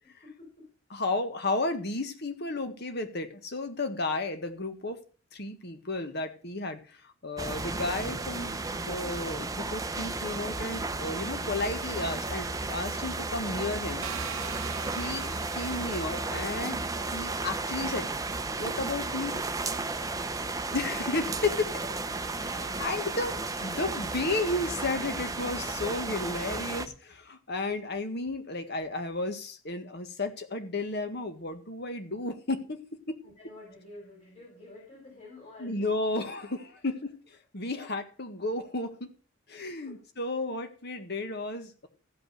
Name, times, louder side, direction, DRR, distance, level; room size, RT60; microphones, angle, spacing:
voice 1, 0.2-0.7 22.3-22.8 33.2-35.9 37.7-37.9 39.8-40.3, left 2 dB, 35° left, -3 dB, 5.0 m, -51 dB
voice 2, 0.9-5.0 5.3-14.0 14.9-16.8 17.1-18.1 18.6-19.4 20.7-21.7 22.8-33.2 35.6-37.1 37.5-39.1 39.5-41.9, left 2 dB, 55° left, 7 dB, 1.6 m, -33 dB
sound 1, 7.4-26.9, right 3 dB, 15° right, 0.7 m, -33 dB
sound 2, 14.0-16.9, right 8 dB, 80° right, 0.6 m, -42 dB
14.5 x 5.6 x 6.7 m, 0.39 s
head